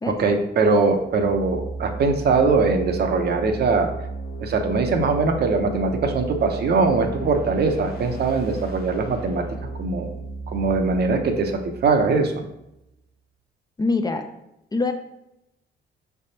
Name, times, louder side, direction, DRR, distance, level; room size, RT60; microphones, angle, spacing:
voice 1, 0.1-3.9 4.4-9.4 9.8-10.1 10.5-12.3, right 4 dB, 55° right, 5 dB, 0.7 m, -21 dB
sound 1, 0.9-12.7, right 3 dB, 50° left, 0.8 m, -34 dB
voice 2, 13.8-14.2 14.7-14.9, left 3 dB, 20° left, 5 dB, 0.4 m, -23 dB
4.9 x 3.4 x 2.8 m, 0.85 s
cardioid pair, 90°, 20 cm